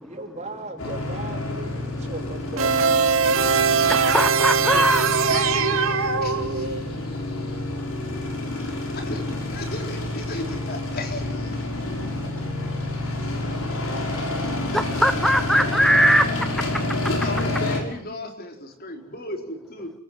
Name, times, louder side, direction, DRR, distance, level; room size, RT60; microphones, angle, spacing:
voice 1, 0.0-2.2 2.5-2.7 4.6-4.8, right 2 dB, 30° right, 3 dB, 4.0 m, -36 dB
sound 1, 0.8-17.8, left 2 dB, 80° left, 6.5 m, -29 dB
sound 2, 2.6-6.9, right 5 dB, 70° right, 2.2 m, -21 dB
voice 2, 3.9-5.1 14.7-16.2, equal, ahead, 9 dB, 1.0 m, -20 dB
voice 3, 5.3-7.6 8.6-11.6 17.1-19.9, left 2 dB, 45° left, 4 dB, 4.3 m, -35 dB
30.0 x 18.5 x 7.4 m, 0.69 s
head